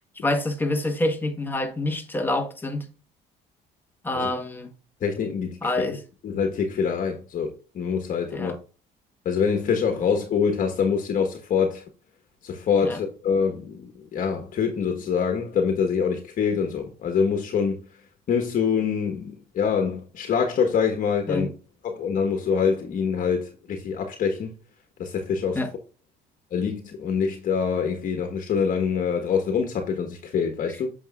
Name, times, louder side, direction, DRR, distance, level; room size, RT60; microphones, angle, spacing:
voice 1, 0.2-2.8 4.0-4.7 5.6-6.0 8.3-8.6 12.8-13.0 21.3-21.5 25.5-25.7, left 2 dB, 10° left, 1.5 m, -27 dB
voice 2, 5.0-5.6 6.2-8.5 9.2-11.8 12.4-17.8 18.3-21.5 21.8-24.5 25.0-25.6 26.5-30.9, left 6 dB, 55° left, 1.4 m, -25 dB
7.8 x 6.2 x 2.5 m
cardioid pair, 110°, 17 cm